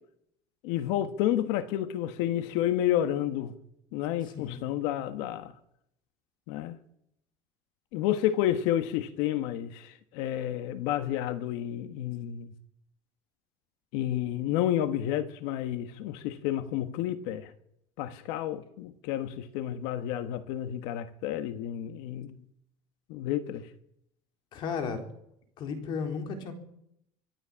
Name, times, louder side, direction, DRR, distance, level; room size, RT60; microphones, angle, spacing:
voice 1, 0.6-3.5 3.9-5.5 6.5-6.8 7.9-12.5 13.9-17.5 18.0-22.4 23.1-23.7, left 12 dB, 80° left, 1.5 m, -30 dB
voice 2, 24.5-25.0 25.6-26.5, left 5 dB, 50° left, 3.7 m, -34 dB
24.5 x 13.5 x 8.7 m
cardioid pair, 150°, 10 cm